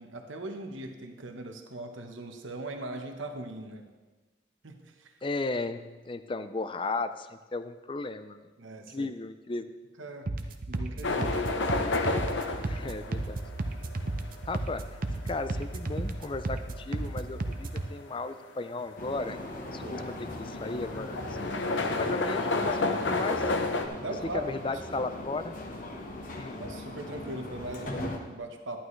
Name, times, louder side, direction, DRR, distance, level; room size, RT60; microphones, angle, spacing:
voice 1, 0.0-3.9 4.6-5.2 8.6-9.1 10.0-10.3 10.7-11.6 19.8-20.0 22.0-22.2 24.0-24.5 24.9-25.1 26.6-28.8, right 2 dB, 85° right, 4 dB, 1.0 m, -39 dB
voice 2, 5.2-8.5 8.9-9.7 12.5-13.4 14.4-15.0 15.2-19.4 19.7-21.6 22.0-23.5 24.3-25.5 26.4-26.6, left 3 dB, 25° left, 11 dB, 0.4 m, -35 dB
sound 1, 10.3-17.9, right 2 dB, 45° right, 0.7 m, -34 dB
sound 2, 11.0-23.9, left 3 dB, 70° left, 0.8 m, -32 dB
sound 3, 19.0-28.2, left 1 dB, 45° left, 1.0 m, -40 dB
11.5 x 11.0 x 3.2 m, 1.3 s
head